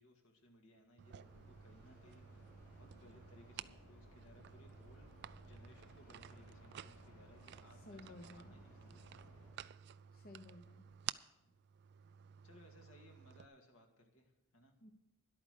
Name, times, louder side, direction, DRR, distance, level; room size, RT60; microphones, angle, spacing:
voice 1, 0.0-9.1 11.4-11.6 12.4-14.7, left 1 dB, 70° left, 3 dB, 2.2 m, -64 dB
sound 1, 1.0-13.5, right 10 dB, 50° right, 0.3 m, -53 dB
sound 2, 1.1-9.5, equal, 90° left, 4.3 m, -61 dB
voice 2, 7.7-8.6 10.1-10.9 14.8-14.9, left 1 dB, 40° left, 4 dB, 0.8 m, -55 dB
11.5 x 8.7 x 6.5 m, 0.89 s
head